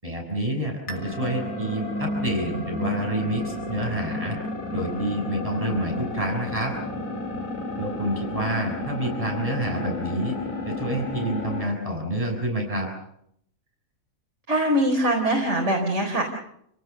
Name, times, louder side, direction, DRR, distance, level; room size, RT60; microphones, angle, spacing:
voice 1, 0.0-4.4 4.7-6.7 7.8-10.4 10.7-12.9, right 1 dB, 25° right, 1 dB, 6.3 m, -28 dB
sound 1, 0.9-11.8, left 2 dB, 70° left, 4.3 m, -32 dB
voice 2, 14.5-16.2, right 1 dB, 55° right, 1 dB, 4.7 m, -22 dB
29.5 x 19.0 x 6.8 m, 0.73 s
omnidirectional pair, 1.4 m